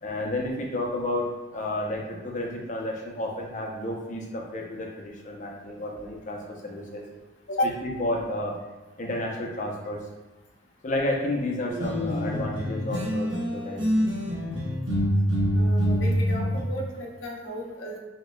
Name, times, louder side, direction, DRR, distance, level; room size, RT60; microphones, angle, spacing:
voice 1, 0.0-7.0 7.8-8.6 9.0-10.1 10.8-14.0, left 1 dB, 40° left, -1 dB, 0.6 m, -31 dB
sound 1, 11.7-13.5 13.8-16.6, equal, 65° right, 0.9 m, -25 dB
voice 2, 15.5-18.0, left 1 dB, 80° left, -1 dB, 0.8 m, -32 dB
5.3 x 2.9 x 2.2 m, 1.1 s
head